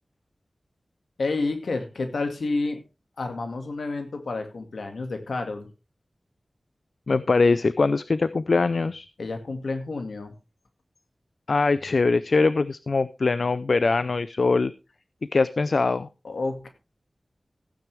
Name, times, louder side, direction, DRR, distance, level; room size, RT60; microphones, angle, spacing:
voice 1, 1.2-2.8 3.2-5.7 9.2-10.3 16.2-16.7, left 3 dB, 90° left, 6 dB, 2.1 m, -30 dB
voice 2, 7.1-9.1 11.5-14.7 15.3-16.1, left 3 dB, 75° left, 15 dB, 0.5 m, -22 dB
15.0 x 9.3 x 3.4 m, 0.29 s
wide cardioid pair, 50°, 0 cm